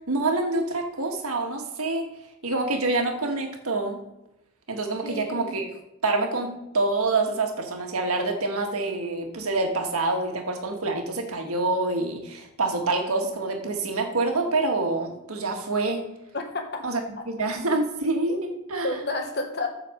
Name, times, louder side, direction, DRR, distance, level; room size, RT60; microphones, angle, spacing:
voice 1, 0.1-2.1 2.4-4.0 4.7-5.7 6.0-16.0 16.8-17.0 17.3-18.9, right 2 dB, 80° right, 3 dB, 1.7 m, -26 dB
voice 2, 5.0-5.5 16.3-16.8 17.2-17.3 18.3-18.4 18.8-19.7, left 2 dB, 50° left, 4 dB, 1.3 m, -30 dB
8.5 x 4.6 x 6.5 m, 0.92 s
head